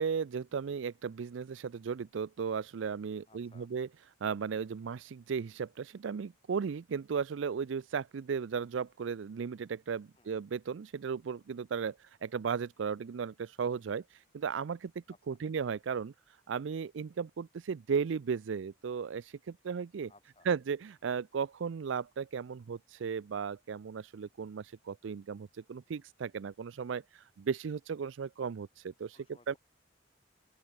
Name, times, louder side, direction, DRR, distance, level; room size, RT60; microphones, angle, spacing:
voice 1, 0.0-3.9 4.2-14.9 15.3-16.1 16.5-20.1 20.4-29.5, right 6 dB, 75° right, 0.4 m, -35 dB
voice 2, 3.3-3.7 10.2-10.3 15.1-15.4 20.1-20.5 29.1-29.6, left 2 dB, 30° left, 6.0 m, -62 dB
open air
head